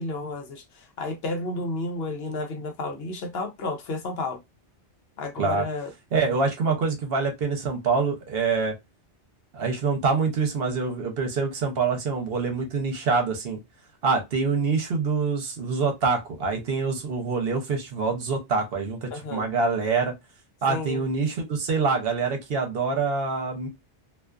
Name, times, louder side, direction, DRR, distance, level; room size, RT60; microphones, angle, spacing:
voice 1, 0.0-4.4 5.2-5.9 19.1-19.5 20.7-21.0, left 2 dB, 65° left, 0.8 m, -32 dB
voice 2, 6.1-8.7 9.5-13.6 14.0-20.1 20.6-23.7, right 4 dB, 60° right, 0.9 m, -25 dB
2.4 x 2.4 x 2.3 m
omnidirectional pair, 1.2 m